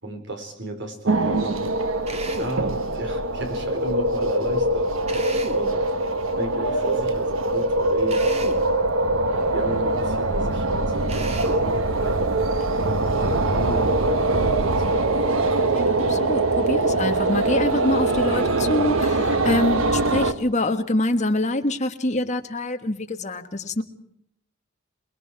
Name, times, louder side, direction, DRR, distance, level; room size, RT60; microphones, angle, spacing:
voice 1, 0.0-1.8 2.4-5.2 5.5-5.9 6.4-8.9 9.5-12.5 13.1-15.1, right 1 dB, 60° right, 5 dB, 4.1 m, -34 dB
sound 1, 1.1-20.3, right 2 dB, 80° right, 1.4 m, -23 dB
Drill, 2.1-2.6 5.1-5.7 8.1-8.7 11.1-11.7, right 2 dB, 30° right, 1.6 m, -35 dB
voice 2, 15.7-23.8, left 1 dB, 35° left, 6 dB, 1.5 m, -25 dB
27.0 x 21.0 x 4.8 m, 0.73 s
head